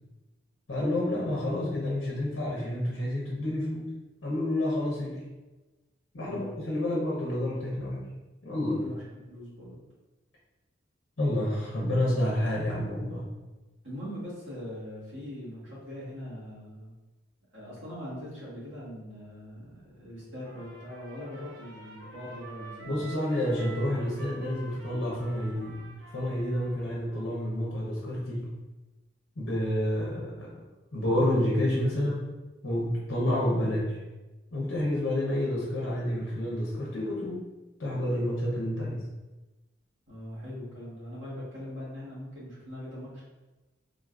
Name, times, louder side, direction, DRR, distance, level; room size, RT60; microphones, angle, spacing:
voice 1, 0.7-3.9 4.2-5.2 6.1-8.0 8.4-8.9 11.2-13.2 22.8-28.5 29.4-30.5 30.9-32.3 32.6-34.0 34.5-37.4 37.8-39.1, left 1 dB, 75° left, -5 dB, 0.8 m, -29 dB
voice 2, 6.2-6.9 8.7-9.8 13.8-16.9 17.5-23.0 40.1-43.2, equal, 65° right, -8 dB, 1.4 m, -41 dB
Trumpet, 20.4-27.1, right 2 dB, 85° right, 0.9 m, -48 dB
3.6 x 2.4 x 2.4 m, 1.1 s
head